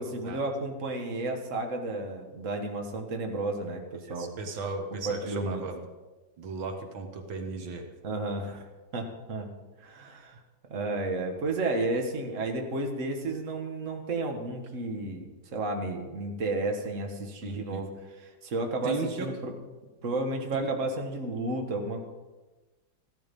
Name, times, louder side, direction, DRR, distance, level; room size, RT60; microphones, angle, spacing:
voice 1, 0.0-4.3 4.9-5.6 8.0-8.7 8.9-9.5 9.8-10.4 10.7-17.9 18.4-19.5 20.0-22.0, right 2 dB, 45° right, 3 dB, 1.8 m, -32 dB
voice 2, 3.9-5.9 6.4-7.9 8.5-8.6 17.4-17.8 18.8-19.3 20.5-20.7, right 4 dB, 90° right, 5 dB, 2.1 m, -36 dB
15.0 x 11.5 x 5.3 m, 1.2 s
omnidirectional pair, 2.0 m